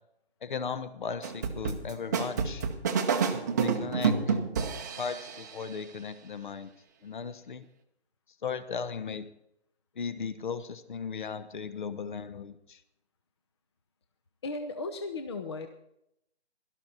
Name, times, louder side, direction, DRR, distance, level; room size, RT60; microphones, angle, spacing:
voice 1, 0.4-2.7 3.6-4.4 5.0-6.7 7.0-7.7 8.4-9.3 9.9-12.8, left 6 dB, 45° left, 13 dB, 1.2 m, -36 dB
sound 1, 1.2-5.5, right 6 dB, 15° right, 0.8 m, -29 dB
voice 2, 14.4-15.7, left 3 dB, 25° left, 6 dB, 0.7 m, -35 dB
17.0 x 13.0 x 4.3 m, 0.77 s
figure-of-eight pair, 160°, 33 cm